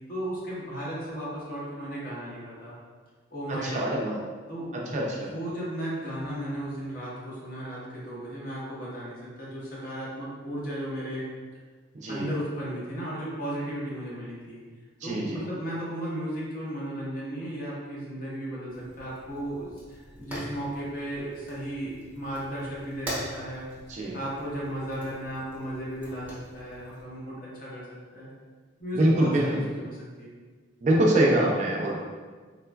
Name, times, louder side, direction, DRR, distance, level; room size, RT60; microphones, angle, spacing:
voice 1, 0.1-2.7 3.3-3.9 4.5-4.7 5.2-11.2 12.1-14.6 15.0-23.7 24.1-28.3 28.8-30.3, right 1 dB, 45° left, -7 dB, 0.9 m, -35 dB
voice 2, 3.6-4.2 4.7-5.3 12.0-12.3 15.0-15.4 23.9-24.2 29.0-29.6 30.8-32.0, right 1 dB, 40° right, -2 dB, 0.4 m, -24 dB
Fire, 18.7-27.0, equal, 10° right, 0.7 m, -43 dB
3.7 x 2.3 x 2.2 m, 1.4 s
head